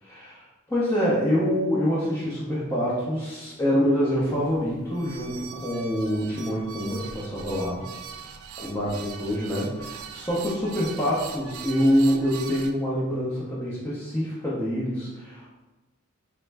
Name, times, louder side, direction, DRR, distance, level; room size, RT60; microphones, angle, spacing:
voice 1, 0.0-7.8 8.2-8.3 8.6-15.6, equal, 10° left, -9 dB, 0.6 m, -26 dB
sound 1, 4.3-12.7, right 7 dB, 90° right, 0.3 m, -41 dB
3.6 x 2.1 x 3.3 m, 1.1 s
head